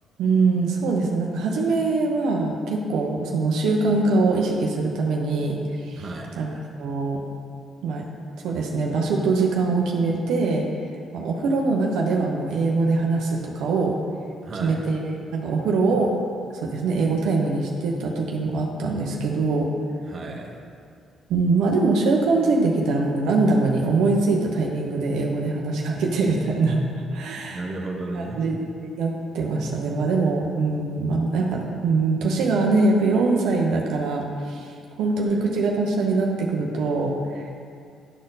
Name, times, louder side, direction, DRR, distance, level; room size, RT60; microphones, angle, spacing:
voice 1, 0.2-6.0 6.4-6.5 6.8-7.2 7.8-8.0 8.4-10.6 11.1-14.0 14.6-15.0 15.3-16.1 16.5-19.7 21.3-26.8 27.1-27.6 28.1-37.5, right 3 dB, 85° right, -1 dB, 0.8 m, -23 dB
voice 2, 6.0-6.4 14.4-14.8 20.1-20.6 27.5-28.4 35.3-35.4, right 2 dB, 40° right, 0 dB, 1.1 m, -33 dB
11.0 x 4.3 x 4.0 m, 2.3 s
cardioid pair, 90°, 0 cm